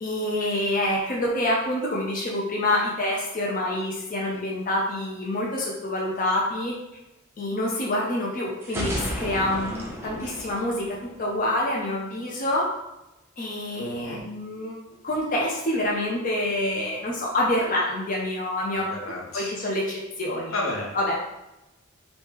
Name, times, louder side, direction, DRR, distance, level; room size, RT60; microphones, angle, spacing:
voice 1, 0.0-6.8 7.4-12.7 13.4-14.8 15.0-18.9 19.3-20.5 20.9-21.3, left 1 dB, 40° left, -3 dB, 0.5 m, -27 dB
sound 1, 8.6-11.5, equal, 15° right, 0.6 m, -33 dB
voice 2, 13.9-14.2 18.7-19.6 20.5-20.9, left 2 dB, 85° left, -2 dB, 0.8 m, -32 dB
2.9 x 2.7 x 3.5 m, 0.96 s
head